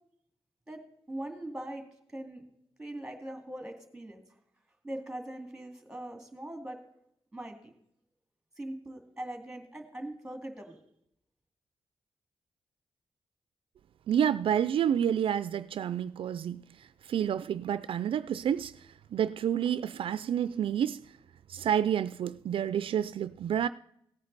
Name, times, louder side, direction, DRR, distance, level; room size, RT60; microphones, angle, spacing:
voice 1, 1.1-1.8 2.1-2.4 2.8-4.2 4.8-6.8 7.3-7.7 8.6-10.8, right 1 dB, 5° right, 2.3 m, -41 dB
voice 2, 14.1-16.6 17.1-18.7 19.1-21.0 21.5-23.7, right 9 dB, 70° right, 0.4 m, -29 dB
17.0 x 9.6 x 4.0 m
wide cardioid pair, 140°, 9 cm